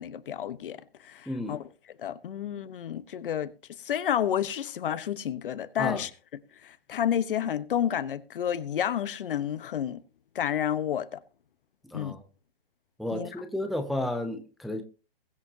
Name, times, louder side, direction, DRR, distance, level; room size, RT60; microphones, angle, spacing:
voice 1, 0.0-1.6 2.0-6.1 6.6-10.0 10.3-11.2 11.9-12.2 13.1-13.3, left 9 dB, 60° left, 1.1 m, -30 dB
voice 2, 1.3-1.6 5.8-6.0 11.9-12.2 13.0-14.8, left 1 dB, ahead, 0.5 m, -32 dB
21.5 x 7.2 x 2.8 m
hypercardioid pair, 150°, 30 cm